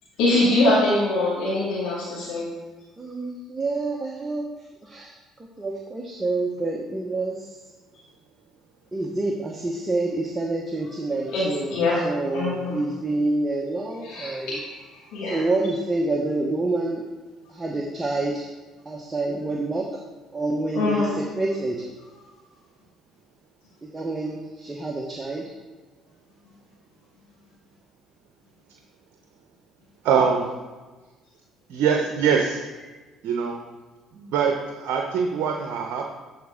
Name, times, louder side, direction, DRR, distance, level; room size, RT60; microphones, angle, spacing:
voice 1, 0.2-2.4 11.3-11.4 11.7-12.0 12.3-12.8 14.0-15.4 20.7-21.2, left 2 dB, 75° left, -9 dB, 2.2 m, -23 dB
voice 2, 3.0-4.5 4.8-5.1 5.6-7.5 8.9-14.6 15.3-17.0 17.5-18.5 18.8-20.0 20.3-21.9 23.8-25.5, right 2 dB, 20° right, 0 dB, 1.0 m, -27 dB
voice 3, 30.0-30.5 31.7-32.7 33.2-33.6 34.1-36.1, right 6 dB, 70° right, 2 dB, 0.7 m, -23 dB
12.0 x 4.4 x 3.7 m, 1.3 s
hypercardioid pair, 60°, 0 cm